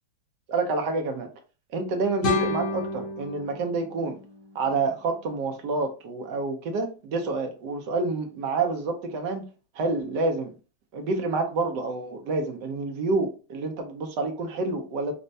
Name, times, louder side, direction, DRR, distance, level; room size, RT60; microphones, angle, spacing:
voice 1, 0.5-1.3 1.7-4.2 4.5-9.4 9.8-10.5 10.9-15.1, right 3 dB, 70° right, 4 dB, 1.2 m, -28 dB
sound 1, 2.2-5.2, left 2 dB, 80° left, 1.9 m, -31 dB
5.2 x 2.2 x 2.6 m, 0.34 s
omnidirectional pair, 2.1 m